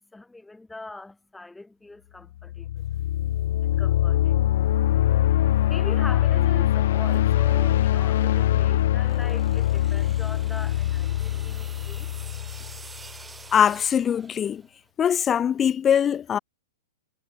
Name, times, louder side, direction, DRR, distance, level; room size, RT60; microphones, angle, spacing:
voice 1, 0.0-2.9 3.3-4.4 5.6-12.1, left 2 dB, 5° left, 6.7 m, -42 dB
sound 1, 2.4-13.2, left 13 dB, 60° left, 1.4 m, -23 dB
sound 2, 8.9-14.8, right 4 dB, 10° right, 3.9 m, -47 dB
voice 2, 13.5-14.6 15.0-16.4, left 8 dB, 20° left, 0.4 m, -22 dB
hypercardioid pair, 110°, 0 cm